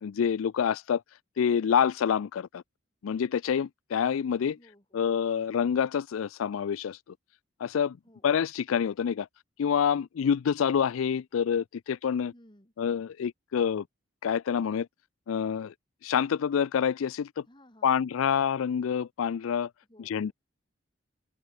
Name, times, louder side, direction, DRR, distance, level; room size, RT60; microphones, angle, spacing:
voice 1, 0.0-1.0 1.4-2.6 3.0-4.6 4.9-7.0 7.6-8.0 8.2-9.3 9.6-12.3 12.8-13.8 14.2-14.9 15.3-15.7 16.0-17.4 17.8-19.7 20.0-20.3, left 7 dB, 90° left, 0.4 m, -27 dB
voice 2, 4.5-5.0 8.0-8.3 12.3-12.7 17.4-18.0 19.9-20.3, left 1 dB, 25° left, 5.4 m, -58 dB
open air
head